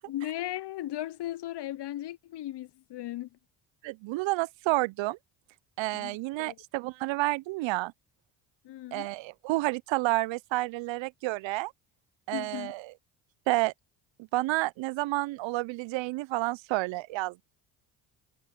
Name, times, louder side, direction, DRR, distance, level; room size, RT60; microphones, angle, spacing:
voice 1, 0.1-3.3 5.9-6.6 8.6-9.1 12.3-12.7, left 13 dB, 55° left, 1.0 m, -37 dB
voice 2, 3.8-5.2 5.8-7.9 8.9-11.7 12.3-12.9 13.5-13.7 14.3-17.4, right 20 dB, 65° right, 0.7 m, -30 dB
hypercardioid pair, 60°, 49 cm